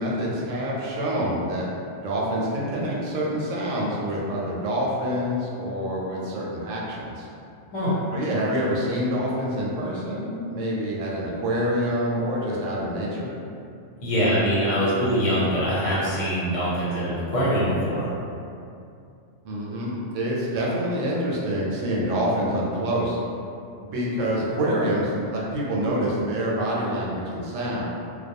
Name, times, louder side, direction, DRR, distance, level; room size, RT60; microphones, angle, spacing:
voice 1, 0.0-1.7 2.0-7.3 8.1-13.3 19.4-23.2 23.8-27.8, equal, 75° right, -5 dB, 0.9 m, -26 dB
voice 2, 7.7-8.0 14.0-18.1, equal, 75° left, -9 dB, 1.2 m, -23 dB
2.3 x 2.2 x 2.7 m, 2.5 s
omnidirectional pair, 1.3 m